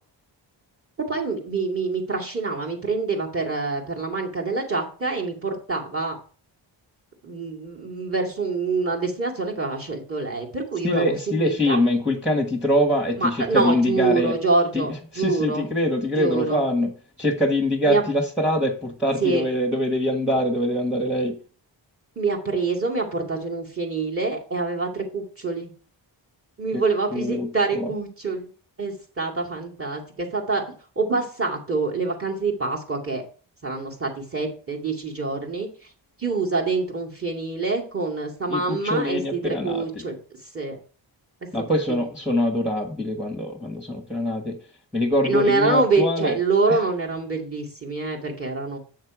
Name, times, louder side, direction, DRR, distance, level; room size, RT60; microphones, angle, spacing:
voice 1, 1.1-6.2 7.2-11.8 13.2-15.7 16.2-16.6 17.8-18.0 19.2-19.4 22.2-25.7 26.6-28.5 28.8-30.6 31.0-33.2 33.6-35.7 36.2-40.2 40.5-40.8 45.2-48.8, right 3 dB, 30° right, -1 dB, 2.3 m, -25 dB
voice 2, 10.8-14.3 14.7-14.9 15.1-16.9 17.2-21.4 26.7-26.8 27.1-27.9 38.5-39.8 41.5-44.6 44.9-46.4 46.7-46.8, left 1 dB, ahead, 2 dB, 1.3 m, -23 dB
8.0 x 6.5 x 4.8 m, 0.39 s
wide cardioid pair, 135°, 45 cm